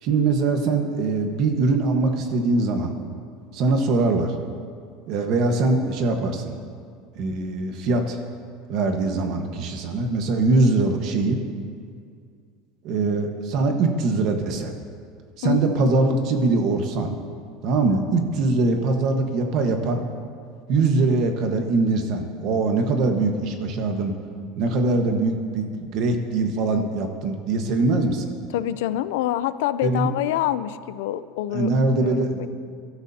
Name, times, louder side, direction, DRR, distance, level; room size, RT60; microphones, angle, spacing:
voice 1, 0.0-2.9 3.5-4.3 5.1-6.5 7.1-8.2 8.7-11.4 12.8-14.7 15.4-17.1 17.6-20.0 20.7-24.1 24.6-28.3 29.8-30.1 31.5-32.5, right 3 dB, 45° right, 4 dB, 1.4 m, -22 dB
voice 2, 15.4-15.9 28.5-32.5, left 13 dB, 90° left, 14 dB, 0.5 m, -26 dB
25.0 x 13.0 x 2.8 m, 2.2 s
cardioid pair, 170°, 0 cm